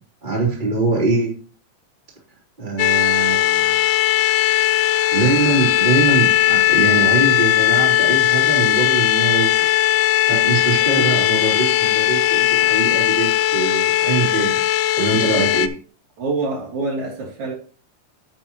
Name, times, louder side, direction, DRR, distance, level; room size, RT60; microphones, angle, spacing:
voice 1, 0.2-1.3 2.6-3.8 5.1-9.6 9.9-14.6 15.0-15.7, right 3 dB, 15° right, 3.3 m, -23 dB
sound 1, 2.8-15.7, left 14 dB, 80° left, 1.6 m, -18 dB
voice 2, 16.2-17.5, right 3 dB, 60° right, 4.2 m, -26 dB
9.3 x 8.0 x 3.0 m
omnidirectional pair, 3.7 m